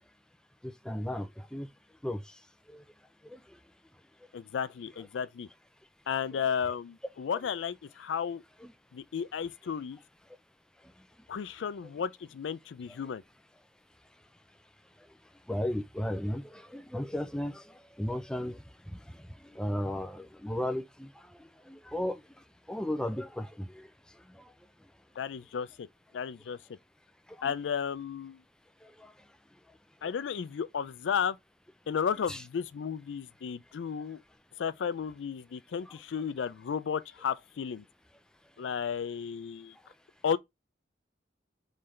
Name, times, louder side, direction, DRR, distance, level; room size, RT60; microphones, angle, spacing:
voice 1, 0.6-1.7 2.0-2.4 2.7-2.8 3.2-3.6 8.6-8.7 15.5-22.2 22.7-23.9 24.3-24.5 27.4-27.5 28.8-29.1 32.3-32.4 35.9-36.0, left 1 dB, 5° left, 0.4 m, -36 dB
voice 2, 4.3-5.5 6.1-8.4 8.9-10.0 11.3-13.2 25.2-25.9 26.1-26.6 27.4-28.4 30.0-31.4 31.9-34.2 34.6-37.8 38.6-39.7 40.2-40.4, left 7 dB, 90° left, 0.4 m, -33 dB
3.8 x 3.2 x 4.2 m
head